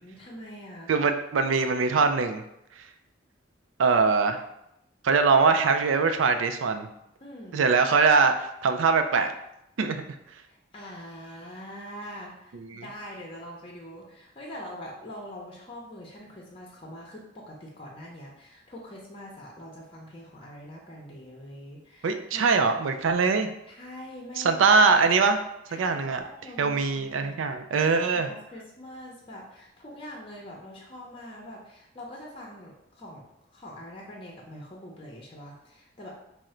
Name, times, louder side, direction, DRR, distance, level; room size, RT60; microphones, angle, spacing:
voice 1, 0.0-0.9 7.2-7.7 9.8-10.0 10.5-22.5 23.7-24.6 25.7-27.3 27.7-33.2 33.5-36.1, equal, 30° left, -2 dB, 0.7 m, -44 dB
voice 2, 0.9-2.4 2.8-2.9 3.8-4.4 5.0-6.9 7.5-9.3 9.8-10.0 12.5-12.8 22.0-23.5 24.4-25.4 25.7-26.2 26.6-28.3, right 4 dB, 85° right, 7 dB, 0.4 m, -22 dB
3.7 x 2.1 x 4.2 m, 0.82 s
head